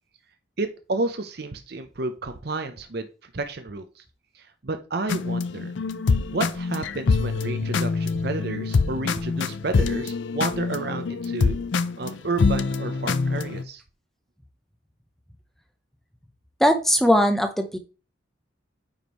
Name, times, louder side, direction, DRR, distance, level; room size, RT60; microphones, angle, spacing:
voice 1, 0.6-3.1 3.3-4.0 4.3-5.7 6.3-11.6 12.0-13.8, right 2 dB, 55° right, 8 dB, 0.7 m, -31 dB
sound 1, 5.1-13.6, left 4 dB, 75° left, 0.5 m, -25 dB
voice 2, 16.6-17.8, equal, ahead, 6 dB, 0.8 m, -19 dB
9.3 x 5.2 x 3.1 m, 0.33 s
head